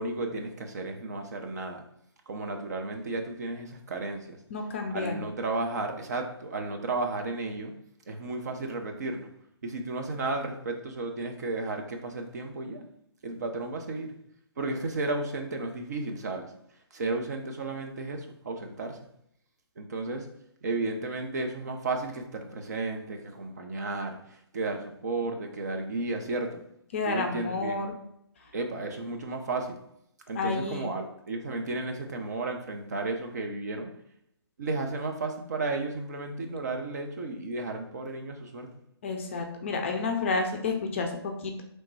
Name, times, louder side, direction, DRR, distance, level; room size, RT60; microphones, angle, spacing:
voice 1, 0.0-1.8 2.3-4.4 4.9-7.7 8.1-9.3 9.6-12.8 13.2-14.2 14.6-16.5 16.9-19.0 19.8-20.3 20.6-26.6 27.0-27.8 28.5-29.8 30.3-34.0 34.6-38.7, right 2 dB, 40° right, 4 dB, 0.5 m, -33 dB
voice 2, 4.5-5.2 26.9-28.0 30.4-30.9 39.0-41.6, left 3 dB, 30° left, 3 dB, 0.4 m, -30 dB
3.1 x 2.1 x 4.1 m, 0.75 s
figure-of-eight pair, 135°, 14 cm